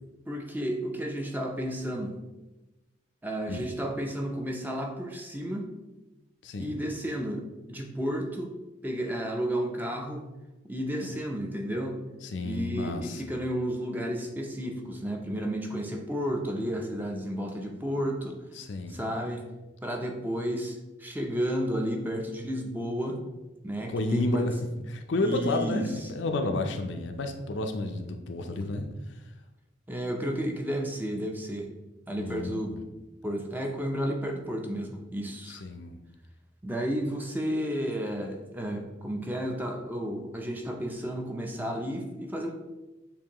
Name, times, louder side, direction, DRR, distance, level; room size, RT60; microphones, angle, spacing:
voice 1, 0.3-2.1 3.2-5.7 6.6-8.5 8.8-10.2 10.6-12.0 12.4-18.4 18.9-19.4 19.8-23.2 23.6-24.5 25.1-26.1 28.5-28.6 29.9-31.7 32.1-32.8 33.2-35.6 36.6-42.5, equal, 10° right, 2 dB, 0.5 m, -32 dB
voice 2, 6.4-6.8 11.0-11.1 12.2-13.2 18.6-18.9 23.9-24.5 24.9-28.9 32.2-32.8 35.5-36.0, left 2 dB, 65° left, 5 dB, 0.5 m, -31 dB
6.9 x 2.6 x 2.9 m, 1.0 s
head